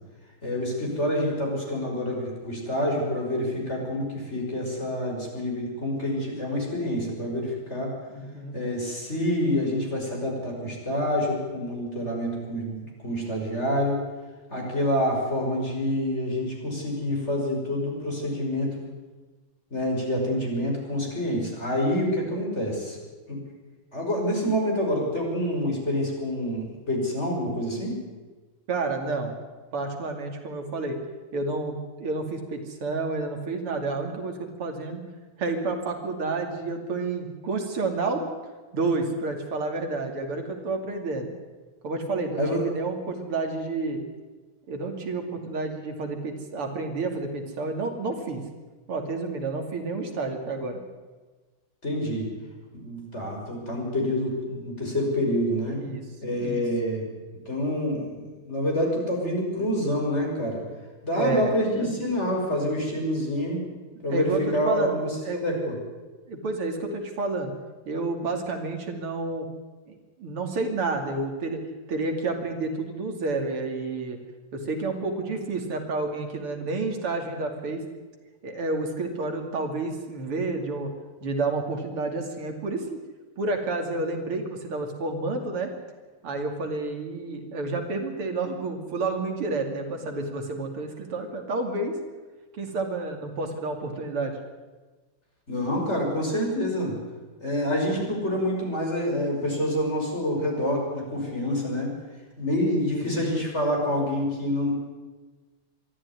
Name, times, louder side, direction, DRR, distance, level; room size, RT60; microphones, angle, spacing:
voice 1, 0.4-7.9 8.5-14.0 14.5-18.8 19.7-23.0 23.3-23.4 23.9-28.0 42.3-42.6 51.8-52.3 52.7-55.8 56.2-57.1 57.5-60.6 61.0-63.6 64.0-65.7 95.5-96.9 97.4-101.9 102.4-104.7, left 1 dB, 30° left, -1 dB, 6.3 m, -27 dB
voice 2, 8.1-8.6 28.7-29.4 29.7-31.0 31.3-35.0 35.4-38.2 38.7-41.3 41.8-44.0 44.7-48.4 48.9-50.8 55.8-56.0 56.4-56.6 61.2-61.9 62.8-62.9 64.1-64.9 65.2-65.4 66.3-67.5 67.9-69.5 69.9-71.6 71.9-74.2 74.5-77.8 78.4-80.9 81.2-83.0 83.4-85.7 86.2-92.0 92.5-94.3 102.9-103.3, right 3 dB, 90° right, 4 dB, 3.6 m, -30 dB
23.0 x 14.0 x 9.7 m, 1.3 s
omnidirectional pair, 2.4 m